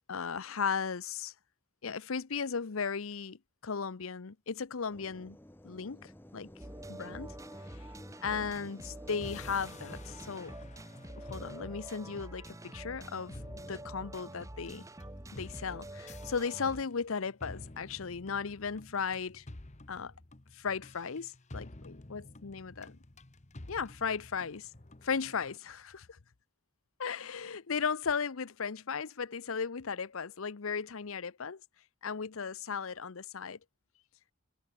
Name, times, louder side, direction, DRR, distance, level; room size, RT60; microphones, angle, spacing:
voice 1, 0.1-1.3 1.8-5.4 5.6-6.5 6.9-7.3 7.7-7.8 8.2-10.6 11.2-13.4 13.7-14.8 15.3-19.4 19.9-20.1 20.5-23.0 23.7-24.7 25.0-26.2 27.0-31.6 32.0-33.6, left 5 dB, 70° left, 0.7 m, -36 dB
sound 1, 4.9-10.6, left 1 dB, 10° left, 1.0 m, -53 dB
sound 2, 6.6-16.8, right 1 dB, 15° right, 1.2 m, -47 dB
sound 3, 9.2-25.6, left 2 dB, 30° left, 1.1 m, -51 dB
head